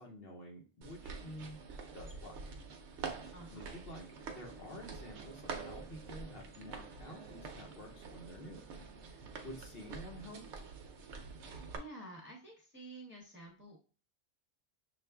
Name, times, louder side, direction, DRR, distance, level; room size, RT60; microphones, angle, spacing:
voice 1, 0.0-1.6 1.9-2.4 3.1-8.6 9.0-10.4, equal, 55° left, 1 dB, 0.9 m, -50 dB
sound 1, 0.8-11.8, right 5 dB, 75° right, 0.9 m, -47 dB
voice 2, 3.3-3.6 11.7-13.8, right 1 dB, 10° right, -3 dB, 0.6 m, -50 dB
6.3 x 2.5 x 2.2 m, 0.38 s
omnidirectional pair, 1.3 m